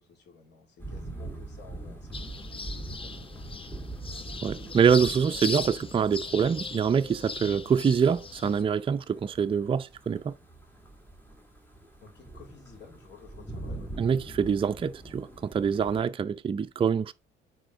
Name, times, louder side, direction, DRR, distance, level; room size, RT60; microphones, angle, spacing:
voice 1, 0.0-3.4 12.0-13.9, left 5 dB, 55° left, 2.9 m, -52 dB
sound 1, 0.8-16.0, right 2 dB, 10° left, 2.3 m, -43 dB
sound 2, 2.1-8.6, left 4 dB, 25° left, 0.8 m, -39 dB
voice 2, 4.4-10.3 14.0-17.1, right 7 dB, 25° right, 0.4 m, -25 dB
9.2 x 4.3 x 3.9 m
cardioid pair, 85°, 21 cm